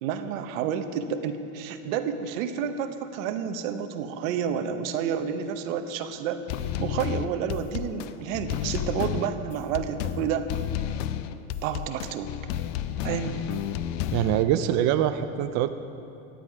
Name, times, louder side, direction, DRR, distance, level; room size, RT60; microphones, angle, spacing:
voice 1, 0.0-6.4 6.8-10.5 11.6-12.3 13.0-13.4, right 8 dB, 85° right, 8 dB, 1.0 m, -30 dB
sound 1, 6.5-14.4, left 11 dB, 70° left, 0.6 m, -31 dB
voice 2, 14.1-15.7, right 11 dB, 45° right, 9 dB, 0.5 m, -24 dB
14.5 x 10.0 x 4.8 m, 2.7 s
supercardioid pair, 135°, 39 cm